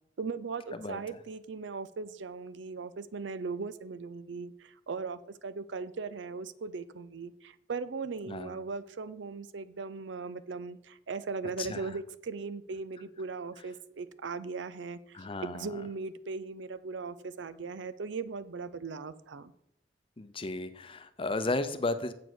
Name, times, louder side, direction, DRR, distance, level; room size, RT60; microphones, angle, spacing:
voice 1, 0.2-19.5, right 4 dB, 85° right, 14 dB, 0.6 m, -38 dB
voice 2, 0.7-1.2 8.3-8.6 11.6-12.0 15.1-15.8 20.2-22.1, left 2 dB, 30° left, 11 dB, 0.6 m, -34 dB
7.8 x 7.1 x 6.1 m, 0.79 s
head